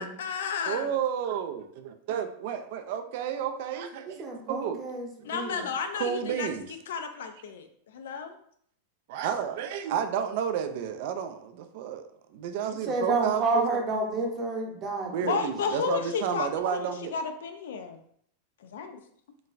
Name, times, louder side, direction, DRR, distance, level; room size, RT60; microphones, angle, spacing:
voice 1, 0.0-0.9 5.2-6.5 6.9-8.4 15.2-18.0 18.6-19.0, left 6 dB, 80° left, 7 dB, 0.4 m, -32 dB
voice 2, 0.7-4.8 6.0-6.7 9.1-12.1 12.3-13.7 15.1-17.2, right 8 dB, 55° right, 8 dB, 0.3 m, -31 dB
voice 3, 4.2-5.6 12.7-15.4, right 3 dB, 25° right, 0 dB, 0.7 m, -30 dB
3.9 x 2.2 x 2.5 m, 0.64 s
supercardioid pair, 155°, 0 cm